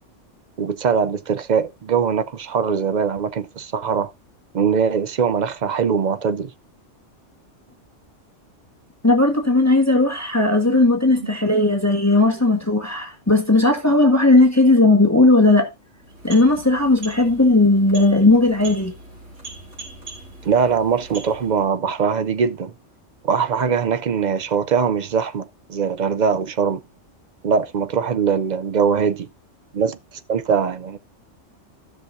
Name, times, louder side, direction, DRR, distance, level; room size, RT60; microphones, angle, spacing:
voice 1, 0.6-4.1 4.5-6.5 10.7-10.8 11.2-11.3 20.4-22.7 23.2-26.8 27.4-29.3 29.7-31.0, right 6 dB, 50° right, 0.5 m, -21 dB
voice 2, 9.0-15.7 16.2-18.9, left 2 dB, 15° left, 1.4 m, -16 dB
sound 1, 15.9-21.7, right 2 dB, 75° right, 4.0 m, -41 dB
15.5 x 6.0 x 2.6 m
omnidirectional pair, 1.3 m